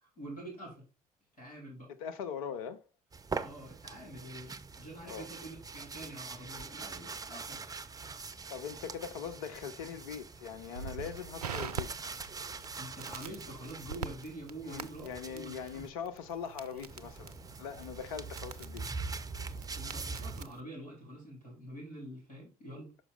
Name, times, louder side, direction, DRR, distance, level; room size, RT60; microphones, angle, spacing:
voice 1, 0.0-0.8 1.4-1.9 3.4-7.6 12.7-15.8 19.7-22.9, right 1 dB, 85° left, 2.9 m, -46 dB
voice 2, 1.9-2.9 5.1-5.3 8.5-11.9 14.6-18.9, left 7 dB, 70° left, 0.6 m, -41 dB
sound 1, 3.1-15.9 16.9-20.5, right 4 dB, 20° right, 0.6 m, -43 dB
Crackle, 10.7-20.6, right 6 dB, 80° right, 0.4 m, -45 dB
5.8 x 5.1 x 3.9 m
figure-of-eight pair, 50°, 19 cm